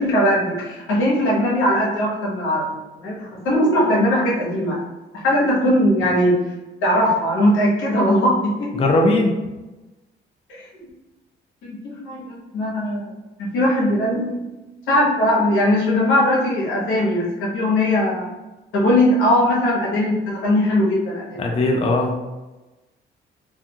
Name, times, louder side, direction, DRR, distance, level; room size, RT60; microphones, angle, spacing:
voice 1, 0.0-4.8 5.1-6.3 6.8-8.7 10.5-10.6 11.6-11.8 12.0-13.1 13.4-14.3 14.9-18.3 18.7-21.4, left 1 dB, 90° left, -4 dB, 0.9 m, -19 dB
voice 2, 8.7-9.4 21.4-22.2, left 2 dB, 30° left, 1 dB, 0.4 m, -19 dB
2.4 x 2.3 x 2.7 m, 1.1 s
cardioid pair, 90°, 20 cm